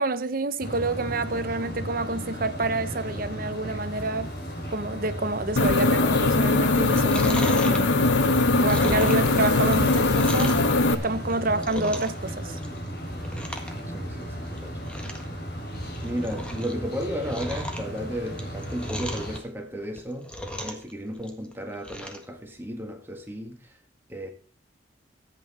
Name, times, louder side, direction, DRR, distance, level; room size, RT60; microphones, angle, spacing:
voice 1, 0.0-4.3 4.7-8.0 8.6-10.6 10.9-12.6, right 2 dB, 50° right, 0.9 m, -28 dB
sound 1, 0.6-19.4, equal, 60° left, 3.3 m, -35 dB
sound 2, 5.6-10.9, left 3 dB, 80° left, 0.9 m, -21 dB
Chewing mastication, 6.9-10.7 11.2-12.2 12.5-12.9 13.2-13.7 14.0-14.1 14.5-14.6 14.8-15.3 15.7-16.7 17.0-19.4 19.8-20.9 21.2-22.2 22.6-22.7, equal, 5° left, 1.5 m, -37 dB
voice 2, 13.1-13.5 13.8-15.4 16.0-23.8 24.1-24.3, equal, 10° right, 1.7 m, -34 dB
14.0 x 8.6 x 4.2 m
head